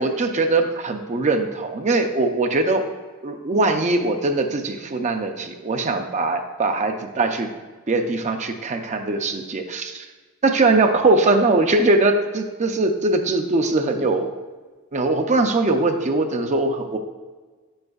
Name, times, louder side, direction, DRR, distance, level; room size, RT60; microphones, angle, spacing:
voice 1, 0.0-2.9 3.2-7.5 7.9-10.0 10.4-14.3 14.9-17.0, right 2 dB, 35° right, 6 dB, 0.5 m, -21 dB
8.6 x 7.8 x 2.4 m, 1.4 s
head